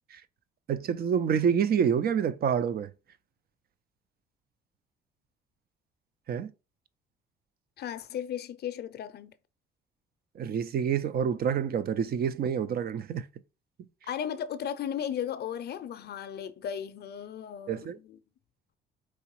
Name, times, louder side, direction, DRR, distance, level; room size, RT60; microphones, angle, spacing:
voice 1, 0.7-2.9 6.3-6.5 10.3-13.3 17.7-18.0, right 7 dB, 50° right, 0.5 m, -27 dB
voice 2, 7.8-9.3 14.1-18.2, left 9 dB, 55° left, 0.5 m, -35 dB
4.7 x 3.0 x 3.0 m
supercardioid pair, 75°, 20 cm